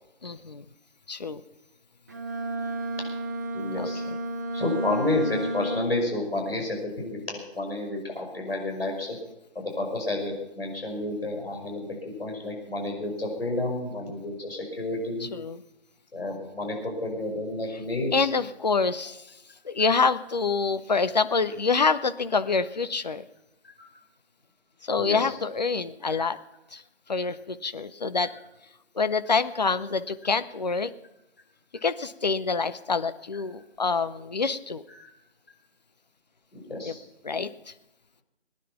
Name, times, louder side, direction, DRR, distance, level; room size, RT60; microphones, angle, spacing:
voice 1, 0.2-0.7 1.1-1.4 3.8-4.2 15.3-15.6 18.1-19.2 19.6-23.2 24.8-26.4 26.7-26.8 27.1-28.3 29.0-30.9 31.8-34.8 36.8-36.9 37.2-37.5, left 4 dB, 40° left, 12 dB, 0.7 m, -26 dB
Bowed string instrument, 2.1-6.2, right 1 dB, 15° right, 0.7 m, -32 dB
voice 2, 3.5-4.0 4.5-9.2 9.6-11.9 12.2-15.3 16.1-18.3 23.8-23.9 25.0-25.4 26.0-26.3 34.9-35.1 36.5-37.0, left 2 dB, 60° left, 0 dB, 5.6 m, -30 dB
21.0 x 10.0 x 5.9 m, 0.93 s
figure-of-eight pair, 150°, 33 cm